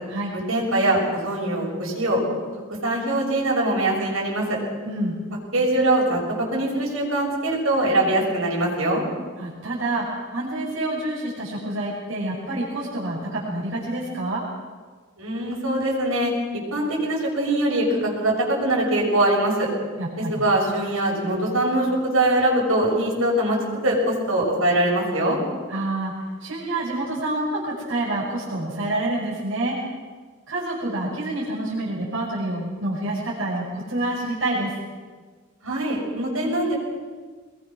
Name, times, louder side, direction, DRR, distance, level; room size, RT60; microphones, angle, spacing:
voice 1, 0.3-2.2 2.8-4.5 5.5-6.2 6.5-9.0 15.2-16.3 16.7-19.7 20.2-25.4 35.6-36.8, right 1 dB, 85° right, -2 dB, 6.9 m, -22 dB
voice 2, 4.8-5.2 9.4-14.4 20.0-20.4 25.7-26.1 26.4-29.8 30.5-34.7, right 1 dB, 70° right, -6 dB, 5.6 m, -27 dB
24.0 x 21.5 x 6.2 m, 1.5 s
head